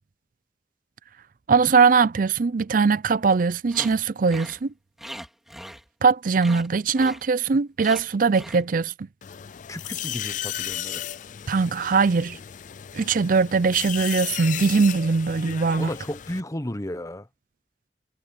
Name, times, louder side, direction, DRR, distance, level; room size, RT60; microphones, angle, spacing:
voice 1, 1.5-4.7 6.0-9.1 11.5-12.4 12.9-15.9, right 5 dB, 50° right, 0.5 m, -21 dB
sound 1, 3.7-4.0 4.3-4.6 5.0-6.1 6.4-6.7 6.9-7.2 7.8-8.0 8.3-8.6, equal, ahead, 3.4 m, -39 dB
sound 2, 9.2-16.4, left 11 dB, 45° left, 0.4 m, -35 dB
voice 2, 9.7-11.0 15.8-17.3, left 1 dB, 20° left, 1.0 m, -33 dB
head